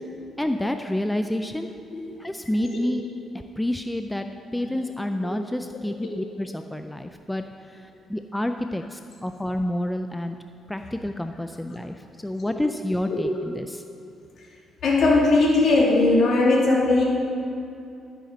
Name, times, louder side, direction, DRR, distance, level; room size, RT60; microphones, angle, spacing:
voice 1, 0.4-1.8 2.2-3.0 3.6-4.3 4.5-7.4 7.7-7.8 8.1-10.4 10.7-13.3 13.6-13.8, left 1 dB, 10° left, 7 dB, 0.4 m, -28 dB
voice 2, 14.8-17.0, left 2 dB, 60° left, -3 dB, 2.7 m, -19 dB
11.5 x 9.2 x 4.0 m, 2.6 s
cardioid pair, 90°, 0 cm